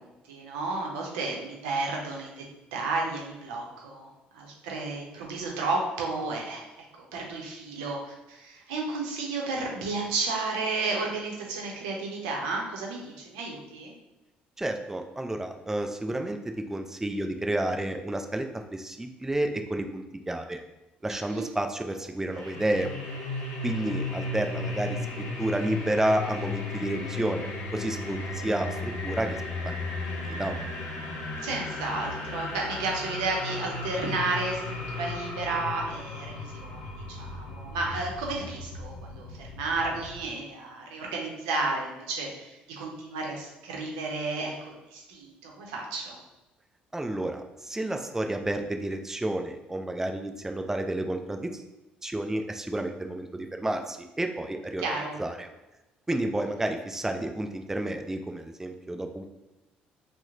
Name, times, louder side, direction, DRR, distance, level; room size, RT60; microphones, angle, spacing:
voice 1, 0.0-2.4 2.7-13.9 21.1-21.5 31.4-46.2 54.8-55.2, right 3 dB, 85° right, -1 dB, 0.6 m, -32 dB
voice 2, 14.6-20.6 21.0-22.9 23.6-29.9 30.2-30.5 46.9-51.6 52.0-54.8 55.2-55.5 56.1-59.3, right 1 dB, 10° right, 4 dB, 0.4 m, -31 dB
sound 1, 22.3-40.2, left 2 dB, 75° left, 0.7 m, -35 dB
2.9 x 2.1 x 3.6 m, 1.0 s
hypercardioid pair, 60°, 4 cm